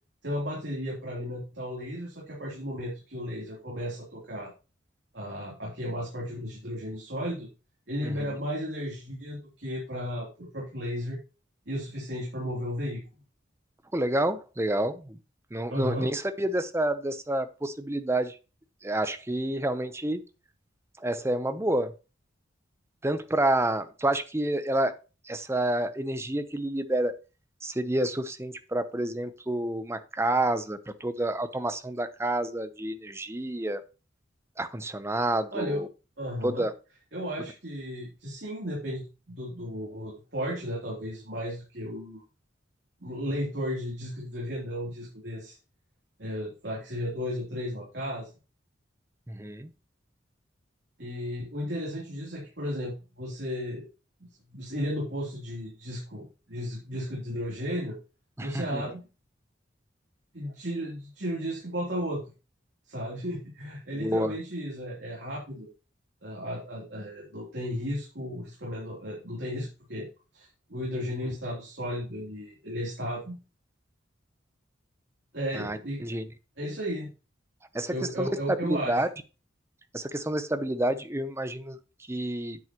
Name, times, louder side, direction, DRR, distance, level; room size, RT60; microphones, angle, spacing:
voice 1, 0.2-4.5 5.1-7.5 7.9-11.2 11.6-13.0 15.7-16.1 35.5-35.8 36.2-36.7 37.1-42.2 43.0-45.5 46.2-48.3 51.0-53.9 54.2-58.0 58.4-59.0 60.3-62.2 62.9-65.7 66.2-70.1 70.3-73.4 75.3-76.0 76.6-77.1 77.9-79.0, equal, 65° right, -4 dB, 3.1 m, -34 dB
voice 2, 8.0-8.4 13.9-15.2 15.5-18.4 18.8-20.2 21.0-21.9 23.0-24.9 25.2-27.1 27.6-33.8 34.6-35.9 36.4-36.7 49.3-49.7 58.4-58.8 63.9-64.3 75.5-76.3 77.7-78.3 78.6-79.1 79.9-81.8 82.1-82.6, right 1 dB, 15° right, 11 dB, 0.7 m, -29 dB
9.4 x 7.8 x 3.0 m, 0.31 s
head